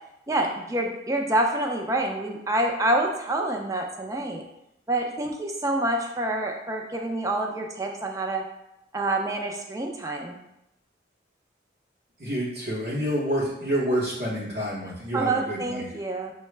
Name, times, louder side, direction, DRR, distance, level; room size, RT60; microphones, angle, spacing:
voice 1, 0.3-4.4 4.9-8.4 8.9-10.4 15.1-16.3, right 1 dB, 20° right, 2 dB, 0.4 m, -27 dB
voice 2, 12.2-15.9, equal, 55° right, -8 dB, 0.8 m, -28 dB
5.6 x 2.1 x 3.2 m, 0.85 s
head